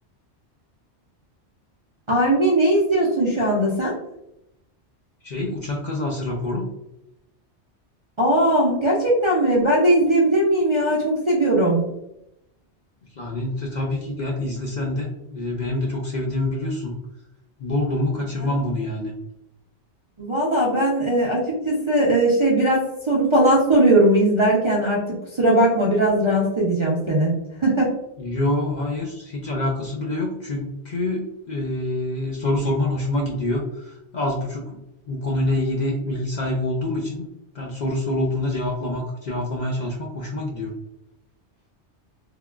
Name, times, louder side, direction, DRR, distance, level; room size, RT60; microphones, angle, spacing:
voice 1, 2.1-3.9 8.2-11.8 18.4-18.5 20.2-27.3 27.6-27.9, right 1 dB, 40° right, -6 dB, 0.4 m, -19 dB
voice 2, 5.2-6.7 13.1-16.9 17.6-19.1 28.2-34.8 35.1-37.3 37.5-40.7, left 1 dB, 55° left, -1 dB, 0.5 m, -26 dB
3.4 x 2.2 x 2.3 m, 0.85 s
omnidirectional pair, 1.2 m